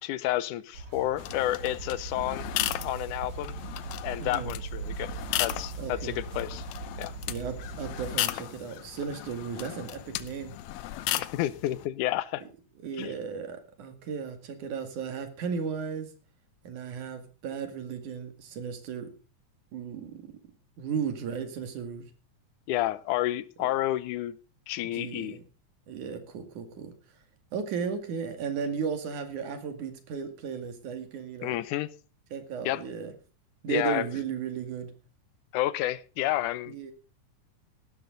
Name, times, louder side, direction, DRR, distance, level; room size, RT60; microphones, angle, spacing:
voice 1, 0.0-2.5 2.8-3.6 4.0-5.1 5.4-6.6 7.0-7.1 11.2-12.4 13.0-13.1 22.7-24.4 24.7-25.4 31.4-31.9 32.7-32.8 33.7-34.1 35.5-36.9, left 14 dB, 90° left, 18 dB, 2.3 m, -30 dB
sound 1, 0.7-8.2, right 5 dB, 50° right, 3.9 m, -40 dB
sound 2, 1.2-11.9, left 14 dB, 75° left, 2.0 m, -36 dB
voice 2, 4.2-4.6 5.8-6.2 7.3-10.5 12.8-16.1 16.6-19.1 19.7-20.3 20.8-22.1 23.6-23.7 24.8-25.4 25.9-26.9 27.5-31.6 32.3-33.1 33.6-34.9 36.7-36.9, right 6 dB, 80° right, 8 dB, 3.6 m, -35 dB
16.0 x 12.5 x 3.9 m, 0.34 s
omnidirectional pair, 3.4 m